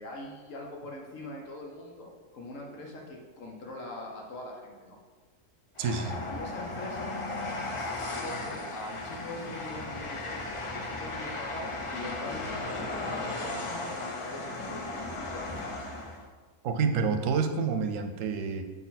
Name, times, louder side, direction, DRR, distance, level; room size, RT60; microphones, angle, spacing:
voice 1, 0.0-5.0 6.3-7.1 8.2-15.5, left 1 dB, 75° left, -1 dB, 1.3 m, -42 dB
Train, 5.8-16.3, left 2 dB, 40° left, 0.4 m, -36 dB
voice 2, 5.8-6.2 16.6-18.6, right 5 dB, 75° right, 7 dB, 1.0 m, -28 dB
7.1 x 4.1 x 4.1 m, 1.4 s
omnidirectional pair, 1.4 m